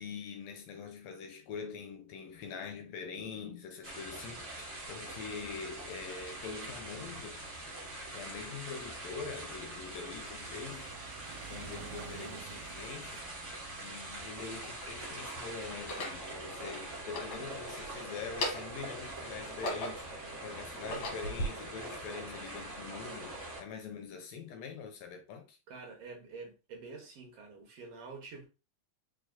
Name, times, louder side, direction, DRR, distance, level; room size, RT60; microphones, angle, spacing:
voice 1, 0.0-7.4 8.1-10.9 11.5-13.3 13.8-25.6, left 5 dB, 75° left, 1.7 m, -44 dB
sound 1, 3.8-23.6, right 2 dB, 40° right, 1.0 m, -44 dB
sound 2, 8.4-16.9 17.7-17.8 18.0-18.1 18.4-18.5, right 8 dB, 85° right, 2.0 m, -52 dB
voice 2, 12.2-12.6 25.7-28.5, right 4 dB, 60° right, 2.0 m, -48 dB
sound 3, 13.2-13.3 14.2-15.0 15.7-16.2 17.0-17.9 18.2-18.9 19.3-20.2 20.7-21.5, left 1 dB, 50° left, 1.7 m, -38 dB
4.9 x 4.1 x 2.3 m
omnidirectional pair, 3.4 m